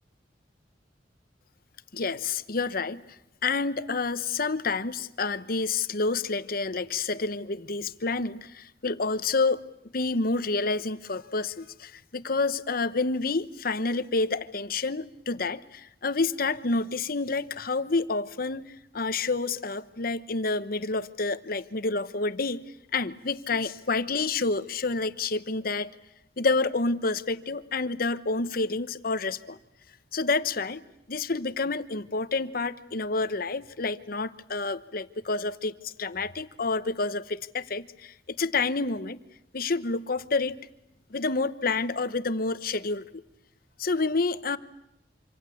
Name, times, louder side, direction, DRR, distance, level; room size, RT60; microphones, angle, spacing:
voice 1, 1.9-3.0 3.4-9.6 9.9-22.6 22.9-25.9 26.4-29.6 30.1-39.2 39.5-40.6 41.1-43.0 43.8-44.6, left 3 dB, 55° left, 13 dB, 1.1 m, -29 dB
26.5 x 26.5 x 8.5 m, 0.82 s
head